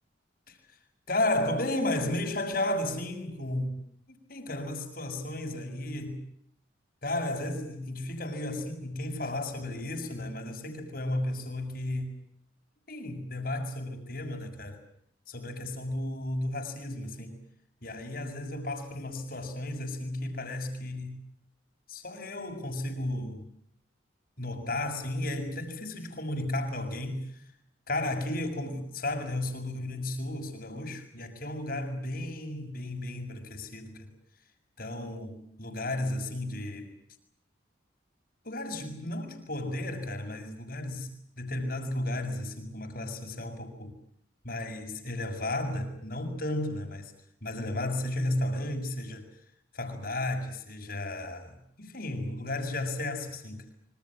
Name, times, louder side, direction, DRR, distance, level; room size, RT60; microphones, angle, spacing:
voice 1, 1.1-3.8 4.1-6.2 7.0-12.1 12.9-14.8 15.3-17.4 17.8-21.2 21.9-23.5 24.4-27.2 27.9-34.1 34.8-36.9 38.4-43.9 44.4-47.1 47.4-49.3 49.7-53.6, left 1 dB, 50° left, 5 dB, 6.6 m, -33 dB
26.5 x 25.5 x 7.5 m, 0.70 s
head